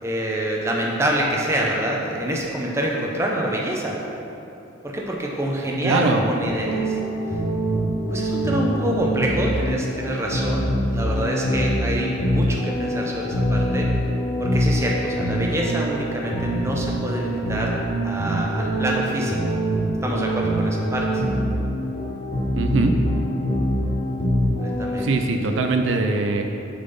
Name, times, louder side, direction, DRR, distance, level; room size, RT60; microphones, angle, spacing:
voice 1, 0.0-4.0 4.8-7.0 8.1-13.9 14.4-17.7 18.0-19.6 20.0-21.2 24.4-25.1, right 1 dB, 15° right, -2 dB, 0.6 m, -26 dB
voice 2, 5.8-6.2 22.6-23.0 25.0-26.4, right 3 dB, 75° right, 4 dB, 0.5 m, -21 dB
sound 1, 6.4-25.0, equal, 50° left, 1.1 m, -24 dB
6.3 x 4.1 x 5.4 m, 2.7 s
head